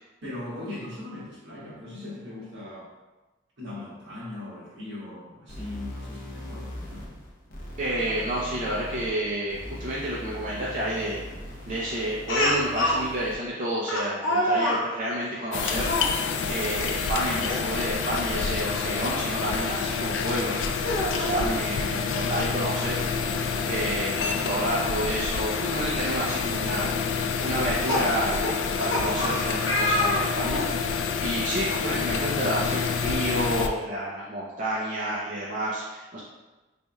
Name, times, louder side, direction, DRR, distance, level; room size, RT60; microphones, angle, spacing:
voice 1, 0.2-2.9 3.6-7.2 11.6-11.7, left 2 dB, 75° right, -7 dB, 1.4 m, -39 dB
sound 1, 5.5-13.5, left 1 dB, 50° left, 0.7 m, -40 dB
voice 2, 7.8-11.3 11.7-28.4 28.8-36.2, right 1 dB, 45° right, -7 dB, 0.6 m, -30 dB
Speech, 12.3-13.0 13.9-14.8 15.8-16.1 17.4-17.6 18.0-18.1 19.8-19.9 20.7-21.6 22.9-23.0 23.3-23.4 25.3-25.4 26.0-26.3 27.4-30.7, left 1 dB, 85° left, 0.7 m, -27 dB
sound 2, 15.5-33.7, left 5 dB, 70° left, 0.3 m, -28 dB
4.0 x 3.4 x 2.3 m, 1.1 s
head